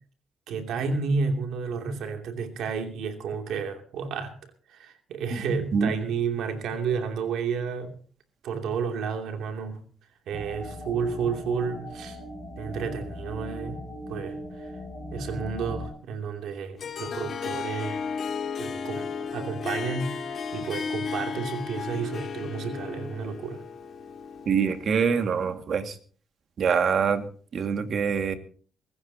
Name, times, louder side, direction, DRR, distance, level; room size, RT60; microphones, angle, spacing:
voice 1, 0.5-4.3 4.7-7.9 8.4-9.8 10.3-12.2 12.6-13.8 14.1-14.7 15.1-18.0 18.6-23.6, right 5 dB, 80° right, 2.8 m, -31 dB
sound 1, 10.3-15.9, equal, 15° left, 6.4 m, -38 dB
Harp, 16.8-25.2, left 6 dB, 55° left, 2.1 m, -34 dB
voice 2, 24.5-26.0 26.6-27.2 27.5-28.3, right 6 dB, 55° right, 2.1 m, -24 dB
24.0 x 14.5 x 2.9 m
cardioid pair, 90°, 0 cm